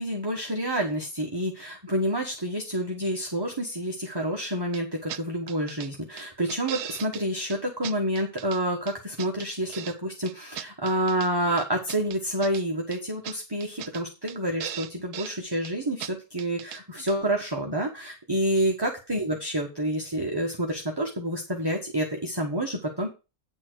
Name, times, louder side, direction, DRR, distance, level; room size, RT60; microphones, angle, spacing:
voice 1, 0.0-23.1, right 1 dB, 15° right, 0 dB, 1.4 m, -28 dB
sound 1, 4.7-4.8 5.1-5.2 5.5-5.9 6.2-7.2 7.5-7.6 7.8-8.6 8.9-10.0 10.3-11.3 11.6-12.6 12.9-13.0 13.2-13.4 13.6-14.0 14.3-14.4 14.6-15.4 15.6-15.7 16.0-16.1 16.4-16.8 17.1-17.2, right 10 dB, 85° right, 1.2 m, -38 dB
9.8 x 4.4 x 6.3 m, 0.29 s
omnidirectional pair, 1.6 m